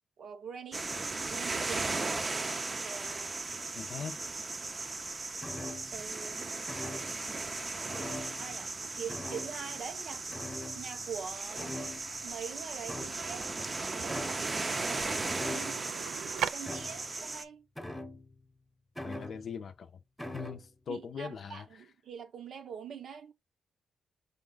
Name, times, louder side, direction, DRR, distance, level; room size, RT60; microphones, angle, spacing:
voice 1, 0.2-2.1 2.7-3.3 5.9-6.4 7.8-7.9 8.4-10.3 10.6-11.8 12.2-13.5 14.0-17.6 20.9-23.3, right 7 dB, 65° right, 0.7 m, -44 dB
sound 1, 0.7-17.4, right 3 dB, 30° right, 0.5 m, -37 dB
voice 2, 3.8-4.2 19.0-19.9 20.3-21.7, left 6 dB, 60° left, 0.5 m, -40 dB
sound 2, 5.4-6.1 6.7-7.3 7.9-8.8 9.1-9.8 10.3-11.2 11.6-12.3 12.9-13.5 14.1-14.6 15.3-16.0 16.6-17.2 17.8-18.4 19.0-19.7 20.2-20.7, left 1 dB, ahead, 0.9 m, -42 dB
sound 3, 11.1-16.5, right 9 dB, 90° right, 0.3 m, -42 dB
5.3 x 2.3 x 3.8 m
cardioid pair, 100°, 0 cm